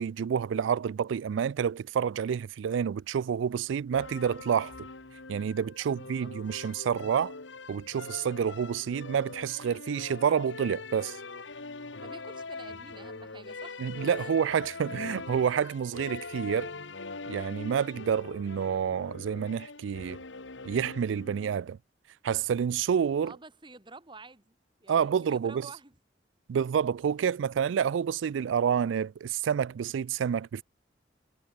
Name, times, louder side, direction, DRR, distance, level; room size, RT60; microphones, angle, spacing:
voice 1, 0.0-4.7 5.3-7.3 7.7-11.2 13.8-16.7 17.3-20.2 20.6-21.8 22.2-23.3 24.9-25.7 26.5-30.6, right 7 dB, 85° right, 0.3 m, -28 dB
sound 1, 3.9-21.6, left 3 dB, 80° left, 1.8 m, -42 dB
voice 2, 5.8-6.3 12.0-13.8 14.2-14.3 23.2-24.6 24.8-26.0, right 3 dB, 25° right, 2.4 m, -50 dB
head